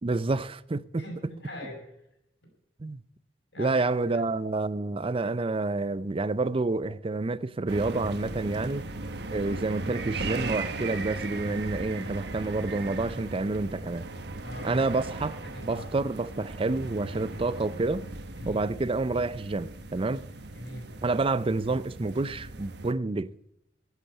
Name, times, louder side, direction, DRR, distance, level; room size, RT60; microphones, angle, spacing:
voice 1, 0.0-1.0 2.8-3.0 3.6-8.8 9.3-14.1 14.6-18.1 18.5-20.3 21.0-23.3, right 3 dB, 30° right, 0.5 m, -29 dB
voice 2, 1.0-1.8 3.5-3.9 4.1-4.2 14.4-14.8 15.5-15.9 18.4-18.6 20.6-20.9, left 1 dB, 70° left, 5.5 m, -41 dB
sound 1, 7.7-22.9, right 2 dB, 65° right, 1.2 m, -37 dB
14.5 x 8.2 x 8.6 m
head